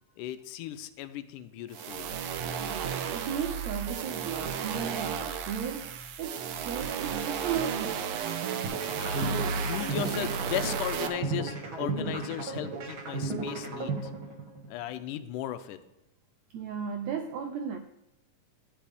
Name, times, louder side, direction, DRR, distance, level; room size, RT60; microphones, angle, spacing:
voice 1, 0.2-2.2 8.9-9.4 9.7-14.1 14.7-15.8, left 12 dB, 85° left, 2.1 m, -36 dB
sound 1, 1.7-11.1, right 7 dB, 75° right, 1.6 m, -33 dB
voice 2, 2.7-8.1 16.5-17.8, right 7 dB, 90° right, 1.5 m, -35 dB
sound 2, 8.6-14.6, right 3 dB, 50° right, 1.8 m, -34 dB
10.5 x 10.0 x 3.5 m
omnidirectional pair, 3.8 m